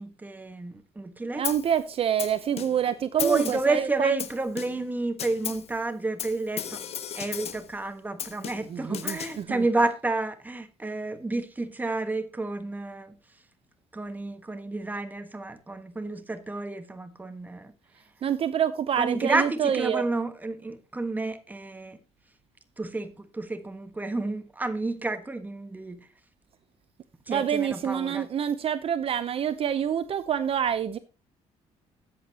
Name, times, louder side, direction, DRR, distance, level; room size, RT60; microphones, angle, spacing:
voice 1, 0.0-1.5 2.9-6.8 7.1-13.2 13.9-17.7 19.0-22.0 22.8-26.1 27.3-28.3, right 3 dB, 15° right, 1.4 m, -30 dB
voice 2, 1.3-4.1 8.7-9.6 18.2-20.0 27.3-31.0, right 9 dB, 50° right, 0.7 m, -27 dB
Snare drum, 1.4-1.8 2.2-2.9 3.2-3.8 4.2-4.9 5.2-5.7 6.2-7.7 8.2-9.4, left 9 dB, 55° left, 1.2 m, -35 dB
13.5 x 8.6 x 2.9 m
cardioid pair, 105°, 13 cm